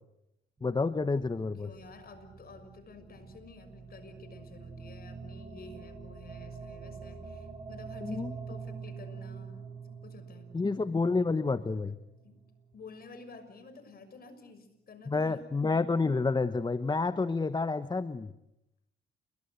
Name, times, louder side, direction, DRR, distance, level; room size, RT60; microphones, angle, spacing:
voice 1, 0.6-1.7 8.0-8.3 10.5-12.0 15.1-18.3, left 3 dB, 20° left, 13 dB, 1.1 m, -29 dB
sound 1, 0.6-12.8, right 5 dB, 25° right, 7.3 m, -46 dB
voice 2, 1.6-9.7 10.0-10.5 12.2-12.3 12.7-15.5, left 3 dB, 50° left, 10 dB, 6.4 m, -51 dB
29.5 x 23.0 x 8.1 m, 0.85 s
cardioid pair, 90°, 20 cm